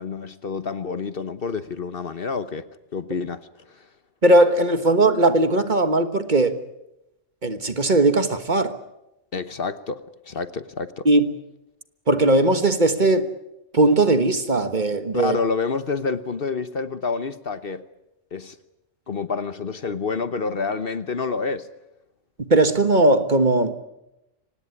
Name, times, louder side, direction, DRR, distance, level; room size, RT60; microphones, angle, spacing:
voice 1, 0.0-2.6 2.9-3.9 9.3-11.1 15.1-17.8 18.3-18.6 19.1-21.7, left 4 dB, 50° left, 1.2 m, -28 dB
voice 2, 4.2-6.6 7.4-8.8 11.0-11.3 12.1-13.3 13.7-15.4 22.5-23.7, right 2 dB, 40° right, 1.5 m, -18 dB
25.0 x 18.5 x 9.8 m
omnidirectional pair, 1.3 m